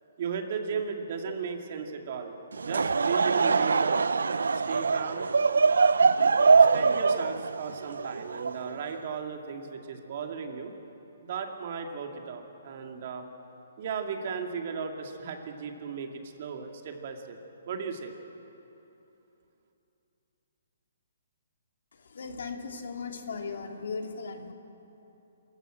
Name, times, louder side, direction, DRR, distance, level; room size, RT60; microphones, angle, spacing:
voice 1, 0.2-2.4 2.6-4.0 4.5-5.3 6.7-10.7 11.2-13.2 13.8-17.4 17.7-18.2, right 6 dB, 50° right, 4 dB, 2.4 m, -36 dB
Laughter / Crowd, 2.5-9.0, right 4 dB, 85° right, 0.6 m, -23 dB
voice 2, 22.1-24.5, left 4 dB, 70° left, 4 dB, 2.5 m, -37 dB
26.5 x 14.5 x 7.9 m, 3.0 s
hypercardioid pair, 150°, 0 cm